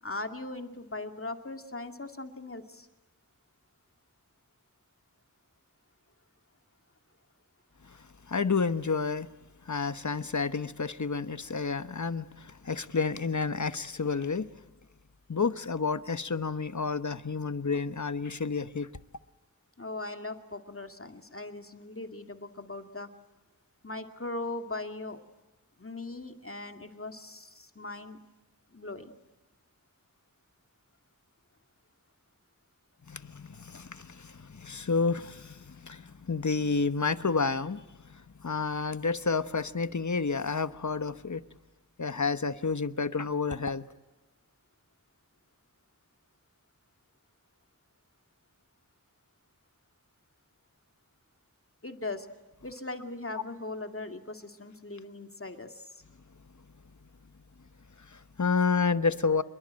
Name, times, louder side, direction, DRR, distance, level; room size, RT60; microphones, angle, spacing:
voice 1, 0.0-2.9 19.8-23.1 23.8-25.2 25.8-28.2 28.7-29.1 51.8-52.3 52.6-56.0, left 2 dB, 40° left, 2.4 m, -39 dB
voice 2, 8.3-9.3 9.6-14.5 15.3-18.9 33.1-37.8 38.1-41.4 42.0-43.8 58.1-59.4, left 4 dB, 55° left, 1.1 m, -30 dB
26.5 x 22.5 x 8.9 m
wide cardioid pair, 50°, 34 cm